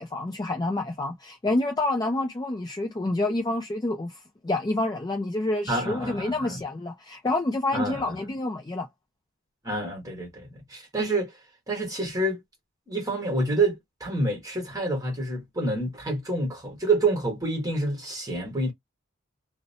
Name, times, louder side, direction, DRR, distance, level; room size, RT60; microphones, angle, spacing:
voice 1, 0.0-4.2 4.4-8.9, left 2 dB, 20° left, 0.3 m, -28 dB
voice 2, 5.7-6.6 7.7-8.1 9.6-11.3 11.7-12.4 12.9-18.7, right 2 dB, 15° right, 1.2 m, -28 dB
2.7 x 2.0 x 2.7 m
head